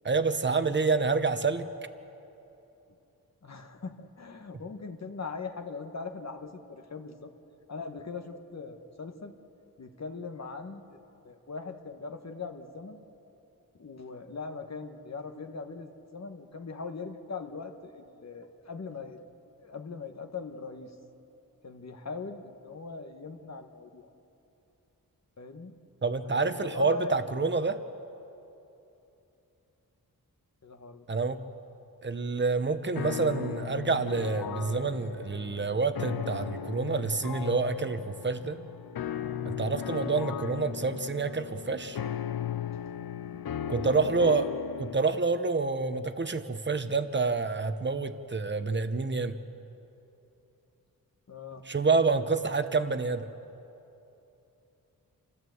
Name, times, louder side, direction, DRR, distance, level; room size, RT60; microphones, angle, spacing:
voice 1, 0.0-1.7 26.0-27.8 31.1-31.4 32.0-38.6 39.4-42.0 43.7-44.5 44.8-49.4 51.6-53.3, right 4 dB, 30° right, 10 dB, 1.0 m, -28 dB
voice 2, 3.4-7.3 7.7-9.3 9.8-11.0 11.2-13.0 13.8-19.2 19.6-20.9 21.6-24.1 25.4-25.7 26.4-27.3 30.6-31.5 43.0-43.1 43.3-43.4 43.7-44.0 51.3-51.7, left 4 dB, 45° left, 6 dB, 1.3 m, -41 dB
sound 1, 33.0-45.0, left 10 dB, 80° left, 0.6 m, -36 dB
27.5 x 14.5 x 7.9 m, 2.9 s
wide cardioid pair, 130°, 36 cm